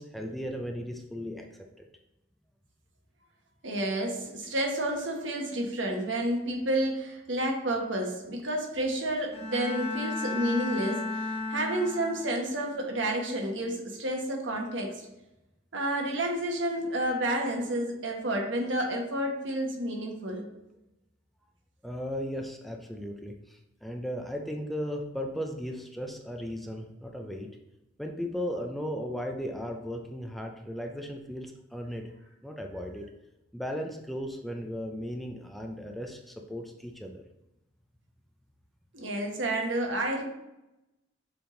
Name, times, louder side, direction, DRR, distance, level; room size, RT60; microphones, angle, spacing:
voice 1, 0.0-1.5 1.8-1.9 21.8-27.5 28.0-32.1 32.4-33.1 33.5-37.2, equal, ahead, 2 dB, 0.5 m, -36 dB
voice 2, 3.6-15.0 15.7-20.4 38.9-40.2, right 1 dB, 75° right, 1 dB, 1.3 m, -30 dB
Bowed string instrument, 9.3-12.5, left 3 dB, 35° left, 0.7 m, -34 dB
7.0 x 3.6 x 3.8 m, 0.92 s
head